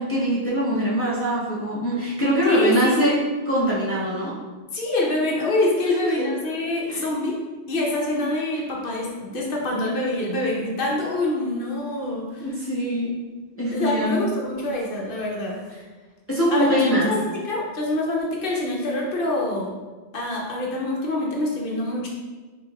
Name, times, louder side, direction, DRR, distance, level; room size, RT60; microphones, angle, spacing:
voice 1, 0.0-4.4 6.0-6.3 6.9-7.0 12.4-13.2 13.6-14.3 16.3-17.1, equal, 15° left, -7 dB, 0.6 m, -23 dB
voice 2, 2.4-3.0 4.7-7.4 7.7-12.5 13.7-15.6 16.5-19.7 20.1-22.1, left 2 dB, 60° left, -2 dB, 0.9 m, -25 dB
4.9 x 3.1 x 2.3 m, 1.3 s
omnidirectional pair, 1.1 m